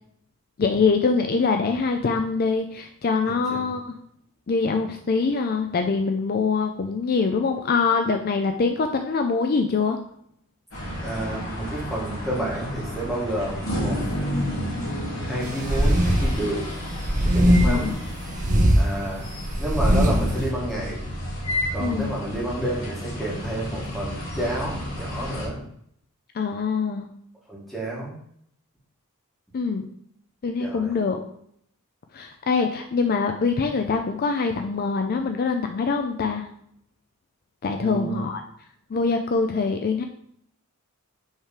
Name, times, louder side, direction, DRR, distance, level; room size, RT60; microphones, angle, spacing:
voice 1, 0.6-4.0 4.5-10.0 17.6-18.0 21.8-22.1 26.3-27.1 29.5-29.9 30.4-31.2 32.1-36.5 37.6-38.4 38.9-40.0, left 4 dB, 45° left, 5 dB, 0.4 m, -24 dB
voice 2, 3.2-3.7 11.0-14.0 15.2-16.7 17.2-17.9 18.8-19.3 19.6-21.0 21.7-25.6 27.5-28.2 30.6-30.9 37.7-38.2, right 1 dB, ahead, -5 dB, 1.7 m, -30 dB
sound 1, 10.7-25.5, left 1 dB, 60° left, 2.3 m, -31 dB
sound 2, 15.6-16.4 16.9-17.9 18.3-18.8 19.4-20.3, equal, 35° right, 0.6 m, -19 dB
5.4 x 3.5 x 4.9 m, 0.69 s
head